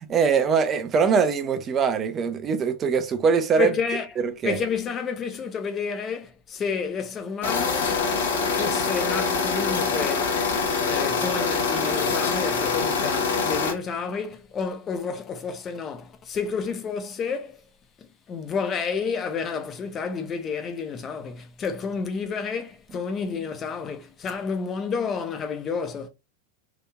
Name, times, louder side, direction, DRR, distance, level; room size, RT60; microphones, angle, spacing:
voice 1, 0.1-3.7 4.2-4.6, right 6 dB, 25° right, 0.5 m, -22 dB
voice 2, 3.6-4.1 4.4-8.1 8.5-10.3 10.9-17.6 18.0-26.1, left 5 dB, 25° left, 0.6 m, -30 dB
sound 1, 7.4-13.7, left 5 dB, 55° left, 1.0 m, -24 dB
2.9 x 2.6 x 2.2 m
figure-of-eight pair, 90°, 0 cm